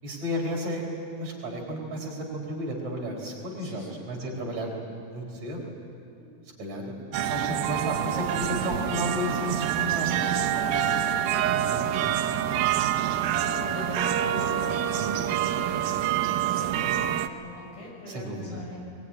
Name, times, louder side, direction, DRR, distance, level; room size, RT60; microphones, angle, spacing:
voice 1, 0.0-4.7 5.1-5.8 6.2-6.3 6.6-10.9 11.7-11.9 18.1-18.6, equal, 50° right, -1 dB, 5.4 m, -33 dB
voice 2, 3.6-4.2 8.0-9.4 10.1-13.2 13.5-19.0, left 1 dB, 85° left, -2 dB, 8.3 m, -42 dB
sound 1, 7.1-17.3, right 10 dB, 90° right, 2.7 m, -26 dB
22.0 x 21.5 x 9.8 m, 2.7 s
omnidirectional pair, 4.1 m